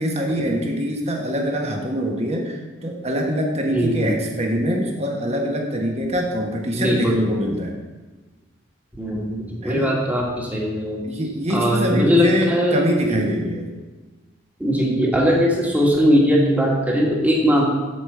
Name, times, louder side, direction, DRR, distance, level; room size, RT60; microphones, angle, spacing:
voice 1, 0.0-7.7 9.6-9.9 11.0-13.7, equal, 35° right, 1 dB, 1.4 m, -24 dB
voice 2, 3.7-4.2 6.7-7.2 9.0-11.0 11.5-12.8 13.1-13.4 14.6-17.6, equal, 10° right, -2 dB, 1.7 m, -20 dB
8.5 x 5.2 x 6.9 m, 1.2 s
head